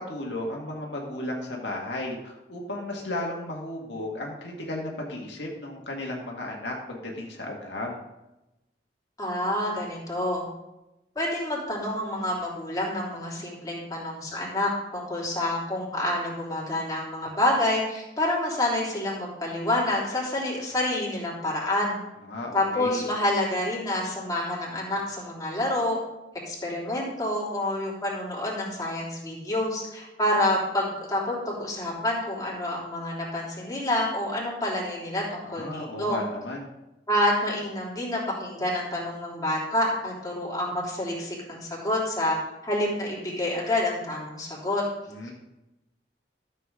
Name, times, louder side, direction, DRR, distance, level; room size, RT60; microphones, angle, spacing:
voice 1, 0.1-8.0 22.3-23.1 35.4-36.7 45.1-45.3, left 1 dB, 80° left, -1 dB, 1.8 m, -34 dB
voice 2, 9.2-10.4 11.1-22.0 22.5-26.0 26.5-36.2 37.1-42.4 42.6-44.8, left 1 dB, 20° left, -5 dB, 3.3 m, -28 dB
13.0 x 7.5 x 3.7 m, 0.95 s
head